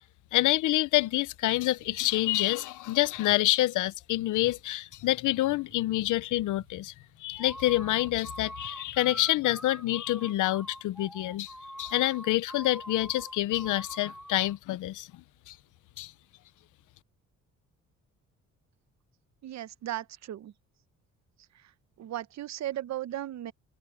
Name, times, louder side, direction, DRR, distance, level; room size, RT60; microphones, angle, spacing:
voice 1, 0.3-6.9 7.2-11.5 11.8-15.1 15.5-15.6 16.0-16.1, left 16 dB, 85° left, 0.8 m, -27 dB
sound 1, 1.2-10.2, right 14 dB, 85° right, 7.8 m, -60 dB
sound 2, 7.3-14.5, equal, ahead, 7.7 m, -44 dB
voice 2, 19.4-20.5 21.5-21.7 22.0-23.5, right 13 dB, 65° right, 0.9 m, -36 dB
cardioid pair, 90°, 30 cm